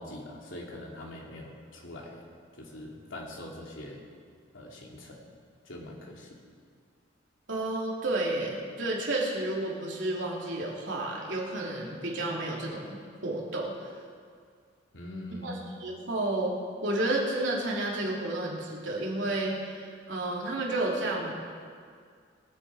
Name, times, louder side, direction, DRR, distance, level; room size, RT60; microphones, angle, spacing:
voice 1, 0.0-2.2 2.6-4.0 4.5-5.2 5.6-6.3 14.9-15.5, left 1 dB, 80° left, -2 dB, 2.8 m, -43 dB
voice 2, 7.5-12.9 13.2-13.7 15.4-16.5 16.8-21.3, right 2 dB, 70° right, -3 dB, 3.0 m, -31 dB
23.5 x 8.2 x 4.9 m, 2.1 s
head